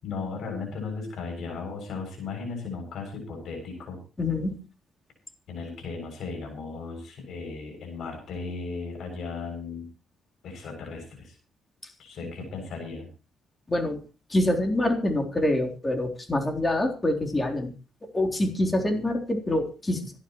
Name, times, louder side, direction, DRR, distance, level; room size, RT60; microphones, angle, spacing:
voice 1, 0.0-4.0 5.5-9.9 10.4-11.4 12.0-13.1, left 4 dB, 70° left, 3 dB, 7.3 m, -36 dB
voice 2, 4.2-4.6 12.2-12.4 13.7-14.0 14.3-17.7 18.1-20.1, left 1 dB, 20° left, 2 dB, 3.7 m, -26 dB
26.0 x 11.5 x 3.1 m, 0.34 s
cardioid pair, 90°, 0 cm